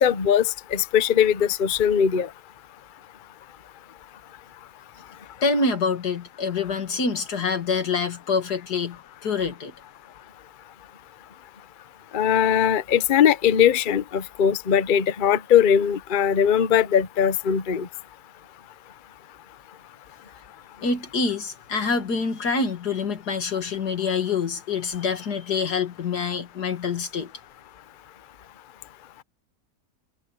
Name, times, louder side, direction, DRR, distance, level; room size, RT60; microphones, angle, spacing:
voice 1, 0.0-2.3 12.1-17.9, left 8 dB, 40° left, 0.8 m, -20 dB
voice 2, 5.4-9.7 20.8-27.3, left 4 dB, 90° left, 2.7 m, -26 dB
omnidirectional pair, 1.7 m